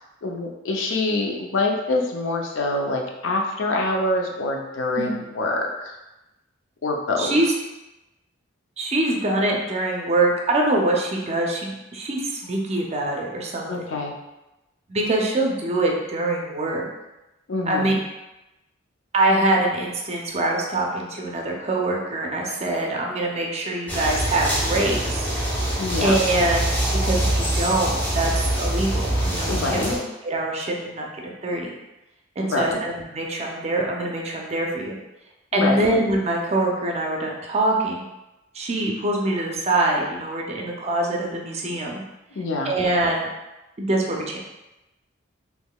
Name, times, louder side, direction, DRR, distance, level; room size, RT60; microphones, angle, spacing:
voice 1, 0.2-6.0 6.8-7.3 13.7-14.1 17.5-18.0 25.8-26.2 29.5-30.1 32.4-32.8 35.5-35.9 42.3-42.7, left 2 dB, 70° left, 1 dB, 0.5 m, -25 dB
voice 2, 7.2-7.5 8.8-13.9 14.9-16.9 17.7-17.9 19.1-25.3 26.0-29.8 30.2-31.1 31.4-31.7 32.4-35.0 35.5-38.1 38.5-42.0 42.6-43.3 43.8-44.4, right 2 dB, 30° right, 0 dB, 0.5 m, -24 dB
sound 1, 23.9-30.0, right 1 dB, 10° left, 0.8 m, -24 dB
3.6 x 3.0 x 2.2 m, 0.97 s
head